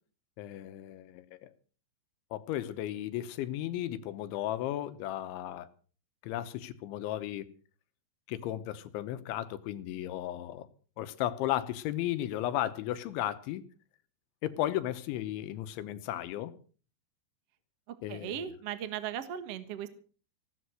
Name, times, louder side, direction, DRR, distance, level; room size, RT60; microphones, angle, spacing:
voice 1, 0.4-1.5 2.3-5.7 6.2-7.5 8.3-10.7 11.0-13.6 14.4-16.5 18.0-18.5, left 13 dB, 80° left, 12 dB, 3.2 m, -35 dB
voice 2, 17.9-19.9, right 10 dB, 85° right, 11 dB, 1.3 m, -38 dB
16.5 x 12.5 x 6.3 m, 0.41 s
omnidirectional pair, 5.4 m